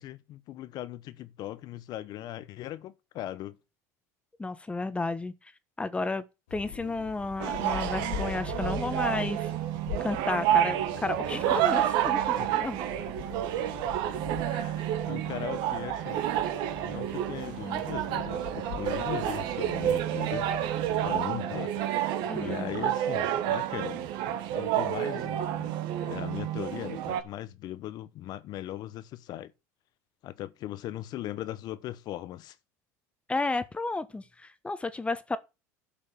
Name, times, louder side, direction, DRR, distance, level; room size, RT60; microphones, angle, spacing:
voice 1, 0.0-3.6 12.4-12.5 14.5-16.2 16.8-20.5 21.0-21.7 22.3-24.1 24.5-25.7 26.1-29.5 30.2-32.6, left 13 dB, 55° left, 1.0 m, -39 dB
voice 2, 4.4-5.3 5.8-6.2 6.5-9.4 10.0-12.8 22.3-22.7 33.3-35.4, left 3 dB, 15° left, 1.2 m, -32 dB
sound 1, 6.5-21.2, left 9 dB, 90° left, 4.0 m, -43 dB
sound 2, 7.4-27.2, right 11 dB, 65° right, 1.6 m, -29 dB
11.5 x 5.2 x 6.9 m
supercardioid pair, 90°, 8 cm